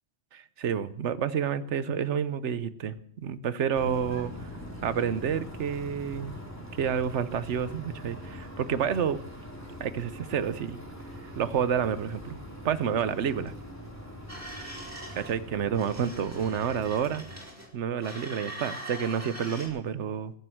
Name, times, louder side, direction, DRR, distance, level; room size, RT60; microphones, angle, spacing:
voice 1, 0.3-4.5 4.8-6.3 6.7-9.2 9.8-10.8 11.4-12.4 12.6-13.5 15.2-17.2 17.7-20.3, right 8 dB, 80° right, 15 dB, 1.1 m, -29 dB
sound 1, 3.7-17.4, left 1 dB, 15° left, 2.9 m, -43 dB
sound 2, 14.3-15.3 15.7-17.7 18.0-19.7, right 1 dB, 15° right, 4.1 m, -42 dB
20.0 x 7.8 x 7.6 m, 0.72 s
omnidirectional pair, 1.2 m